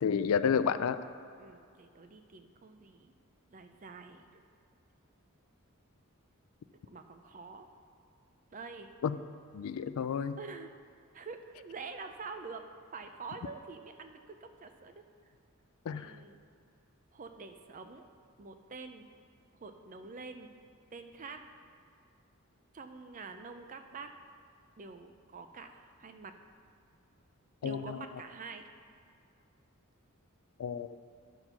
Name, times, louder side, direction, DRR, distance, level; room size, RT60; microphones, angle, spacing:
voice 1, 0.0-1.0 9.0-9.2 9.5-10.4 15.9-16.2 27.6-28.0 30.6-30.9, left 7 dB, 70° left, 12 dB, 0.3 m, -30 dB
voice 2, 1.4-3.1 3.5-4.4 6.7-7.7 8.5-8.9 10.4-10.7 11.1-12.7 12.9-15.0 15.9-16.4 17.1-18.1 18.4-19.1 19.6-20.5 20.9-21.5 22.7-24.1 24.8-26.3 27.6-28.7, right 4 dB, 35° right, 7 dB, 0.5 m, -46 dB
10.5 x 4.6 x 5.7 m, 2.3 s
head